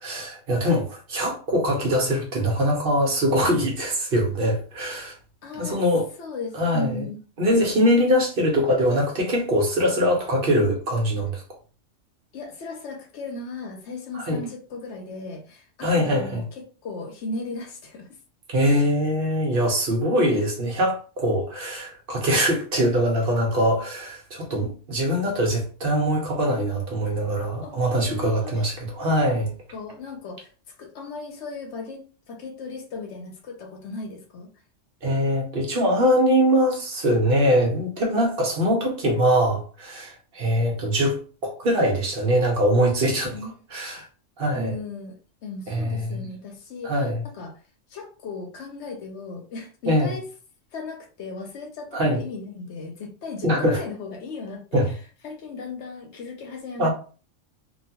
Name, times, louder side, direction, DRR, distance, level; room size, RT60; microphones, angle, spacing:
voice 1, 0.0-5.2 5.5-6.1 6.5-7.0 7.4-11.4 14.1-14.4 15.8-16.4 18.5-29.5 35.0-43.4 43.7-44.1 44.4-44.7 45.7-46.2 46.8-47.2 49.9-50.1 51.9-52.2 53.4-53.8 54.7-54.9 56.8-56.9, equal, 50° right, 0.9 m, -22 dB
voice 2, 5.4-5.8 6.2-7.2 12.3-18.1 20.3-20.4 27.6-27.8 28.1-28.7 29.7-30.5 30.8-34.5 43.3-43.6 44.5-45.1 45.4-47.1 47.3-47.6 47.9-50.3 50.7-56.9, left 3 dB, 70° left, 0.9 m, -36 dB
2.9 x 2.3 x 2.8 m
omnidirectional pair, 1.3 m